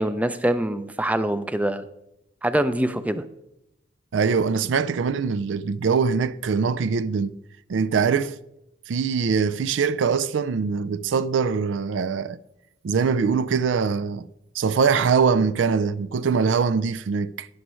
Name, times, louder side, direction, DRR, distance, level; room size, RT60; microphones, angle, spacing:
voice 1, 0.0-1.8 2.4-3.2, right 1 dB, 10° right, 0.4 m, -24 dB
voice 2, 4.1-7.3 7.7-8.4 8.9-12.4 12.8-14.3 14.6-17.5, right 5 dB, 80° right, 0.4 m, -23 dB
11.5 x 10.0 x 3.1 m
head